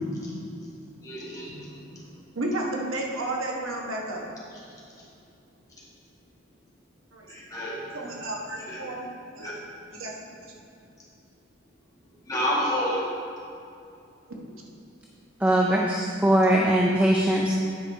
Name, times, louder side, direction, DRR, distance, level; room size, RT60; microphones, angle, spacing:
voice 1, 1.0-1.6 7.3-7.8 8.7-8.8 9.4-9.5 12.3-13.0, equal, 20° left, -7 dB, 1.9 m, -29 dB
voice 2, 2.3-4.2 7.1-7.3 7.9-9.1 9.4-9.6 9.9-10.5, right 1 dB, 85° right, -1 dB, 1.2 m, -32 dB
voice 3, 15.4-17.5, right 1 dB, 5° right, -1 dB, 0.4 m, -21 dB
9.3 x 5.4 x 4.6 m, 2.5 s
head